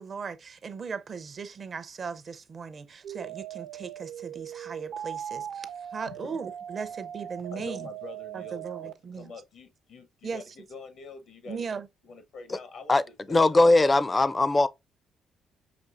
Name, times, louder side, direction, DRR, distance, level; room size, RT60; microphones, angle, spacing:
voice 1, 0.0-5.7 5.9-7.9 8.3-9.3 10.2-10.4 11.5-11.9, right 5 dB, 45° right, 0.5 m, -38 dB
sound 1, 3.0-8.9, right 10 dB, 85° right, 0.8 m, -39 dB
voice 2, 7.5-11.6 12.0-13.0 13.3-13.6, left 4 dB, 75° left, 1.0 m, -45 dB
voice 3, 13.3-14.7, left 2 dB, 25° left, 0.4 m, -20 dB
6.0 x 2.7 x 2.5 m
cardioid pair, 90°, 0 cm